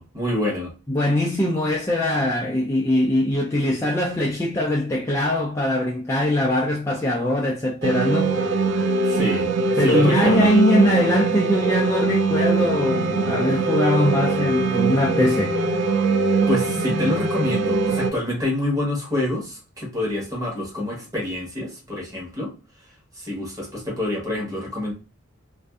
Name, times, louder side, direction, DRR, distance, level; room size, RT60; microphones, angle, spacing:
voice 1, 0.0-0.7 9.0-9.5 9.8-10.6 16.5-22.5 23.1-24.9, left 1 dB, 15° right, 1.1 m, -27 dB
voice 2, 0.9-8.3 9.8-15.6, left 1 dB, 15° left, 0.3 m, -21 dB
sound 1, 7.8-18.1, right 3 dB, 55° right, 0.4 m, -22 dB
2.5 x 2.4 x 2.3 m
head